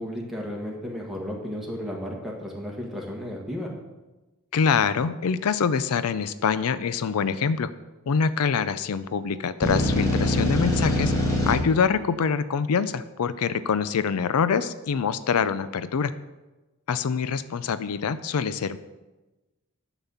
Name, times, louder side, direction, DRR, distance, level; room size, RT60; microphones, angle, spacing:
voice 1, 0.0-3.7, equal, ahead, -2 dB, 1.5 m, -33 dB
voice 2, 4.5-7.7 8.1-11.1 11.5-16.1 16.9-18.8, left 6 dB, 80° left, 14 dB, 0.4 m, -25 dB
sound 1, 9.6-11.6, left 1 dB, 15° left, 1.4 m, -23 dB
11.5 x 4.1 x 7.0 m, 1.1 s
head